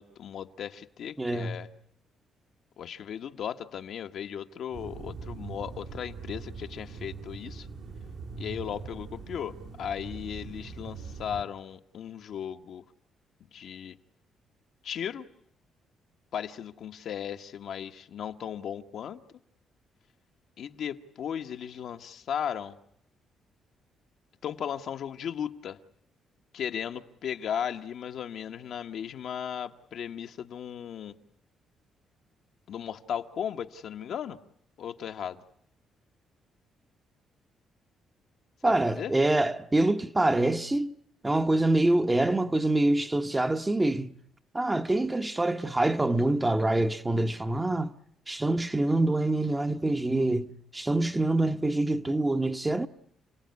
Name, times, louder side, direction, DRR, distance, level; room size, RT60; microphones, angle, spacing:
voice 1, 0.0-1.7 2.8-7.7 8.4-12.8 13.4-13.9 14.8-15.3 16.3-19.2 20.6-22.8 24.4-25.8 26.5-31.2 32.7-34.4 34.8-35.4 38.6-39.1, left 8 dB, 70° left, 1.3 m, -36 dB
voice 2, 1.2-1.6 38.6-40.9 41.2-44.1 44.5-47.9 48.3-52.9, right 2 dB, 15° right, 1.0 m, -25 dB
sound 1, 4.7-11.4, right 4 dB, 70° right, 3.4 m, -41 dB
29.5 x 17.5 x 9.6 m
cardioid pair, 90°, 0 cm